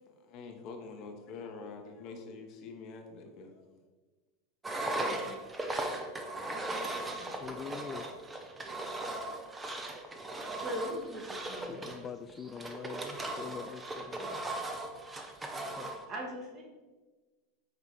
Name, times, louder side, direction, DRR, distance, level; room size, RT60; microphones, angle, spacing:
voice 1, 0.1-3.7, left 4 dB, 50° left, 4 dB, 1.0 m, -46 dB
Engine, 4.6-16.0, right 2 dB, 15° right, 0.8 m, -38 dB
voice 2, 5.0-5.4 6.4-7.4 10.2-10.3 10.6-12.0 16.1-16.6, equal, 40° right, -1 dB, 1.8 m, -42 dB
voice 3, 7.4-8.2 11.6-14.4 15.8-16.0, left 6 dB, 30° left, 6 dB, 0.4 m, -44 dB
5.4 x 4.0 x 4.7 m, 1.3 s
hypercardioid pair, 100°, 0 cm